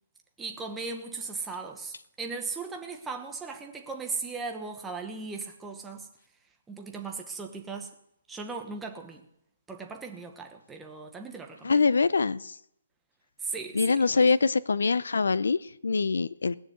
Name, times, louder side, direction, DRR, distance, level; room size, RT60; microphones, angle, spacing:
voice 1, 0.4-6.1 6.7-7.9 8.3-9.2 9.7-11.8 13.4-14.3, right 4 dB, 5° right, 1.0 m, -37 dB
voice 2, 11.6-12.5 13.7-16.6, left 4 dB, 85° left, 0.6 m, -24 dB
18.5 x 6.7 x 7.9 m
hypercardioid pair, 170°, 0 cm